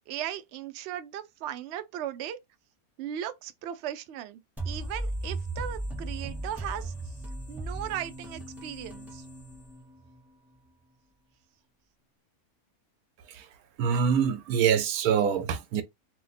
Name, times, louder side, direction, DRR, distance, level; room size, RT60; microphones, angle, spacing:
voice 1, 0.1-2.4 3.0-6.9 7.5-9.2, right 11 dB, 65° right, 0.6 m, -37 dB
sound 1, 4.6-10.2, right 2 dB, ahead, 0.5 m, -37 dB
voice 2, 13.8-15.8, right 7 dB, 90° right, 1.1 m, -25 dB
2.8 x 2.1 x 4.0 m
omnidirectional pair, 1.6 m